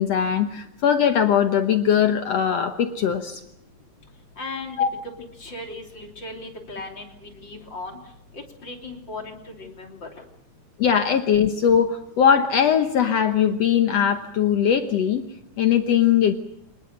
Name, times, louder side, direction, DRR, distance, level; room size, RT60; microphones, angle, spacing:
voice 1, 0.0-3.4 4.8-4.9 10.8-15.2 15.6-16.3, left 8 dB, 65° left, 8 dB, 1.9 m, -20 dB
voice 2, 4.4-4.8 5.4-8.0 8.3-10.2, left 2 dB, 35° left, 3 dB, 3.5 m, -37 dB
25.5 x 20.5 x 7.9 m, 0.78 s
omnidirectional pair, 3.5 m